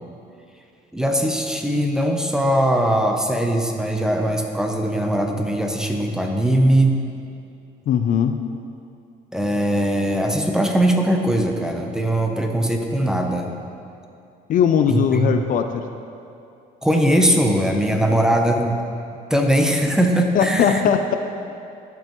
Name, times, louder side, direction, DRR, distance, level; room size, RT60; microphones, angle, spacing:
voice 1, 0.9-7.0 9.3-13.5 14.9-15.4 16.8-18.8 19.3-20.8, right 1 dB, 5° right, 3 dB, 0.6 m, -20 dB
voice 2, 7.9-8.4 14.5-15.8 20.3-21.2, left 8 dB, 55° left, 7 dB, 0.4 m, -19 dB
12.0 x 5.4 x 3.0 m, 2.6 s
cardioid pair, 110°, 17 cm